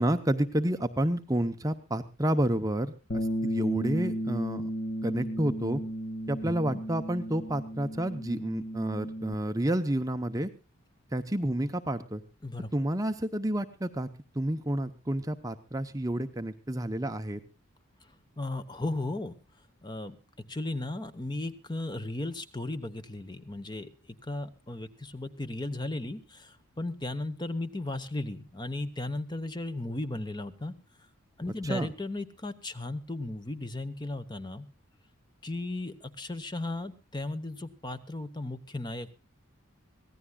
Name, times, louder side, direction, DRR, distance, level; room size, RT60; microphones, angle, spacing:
voice 1, 0.0-4.7 5.0-5.8 6.3-10.5 11.1-12.2 12.7-14.1 14.3-17.4 31.6-31.9, right 1 dB, 15° right, 8 dB, 0.7 m, -30 dB
Bass guitar, 3.1-9.3, equal, 50° left, 1.8 m, -34 dB
voice 2, 6.4-6.8 12.4-12.7 18.4-19.4 19.8-20.2 20.5-30.7 31.4-34.7 35.4-39.2, left 2 dB, 20° left, 11 dB, 1.0 m, -36 dB
24.5 x 17.0 x 2.3 m, 0.31 s
head